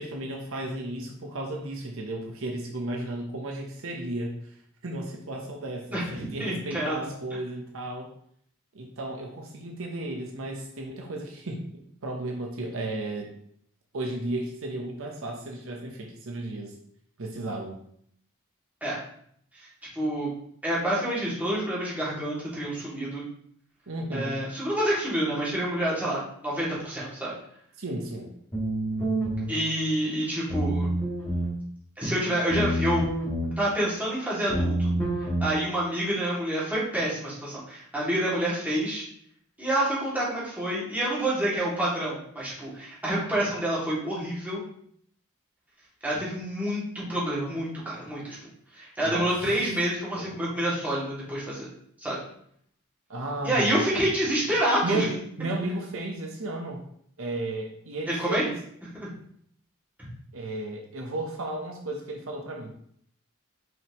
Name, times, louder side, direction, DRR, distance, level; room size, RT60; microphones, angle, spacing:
voice 1, 0.0-8.1 8.7-13.3 13.9-16.7 17.2-17.8 23.9-24.4 27.8-28.3 49.0-49.3 50.2-50.3 53.1-54.0 54.8-56.8 57.2-58.5 60.3-62.7, right 2 dB, 65° right, 1 dB, 0.9 m, -34 dB
voice 2, 5.9-7.0 18.8-19.0 20.0-20.3 20.6-23.2 24.1-27.3 29.5-30.9 32.0-33.1 33.6-34.9 35.4-39.1 39.6-44.6 46.0-48.4 48.7-51.7 52.0-52.2 53.4-55.0 58.1-58.4 58.9-59.1, right 1 dB, 10° right, -8 dB, 2.5 m, -28 dB
sound 1, 28.5-29.5 30.5-31.5 32.5-33.5 34.5-35.5, right 1 dB, 10° left, 2.2 m, -27 dB
6.1 x 5.1 x 3.1 m, 0.66 s
head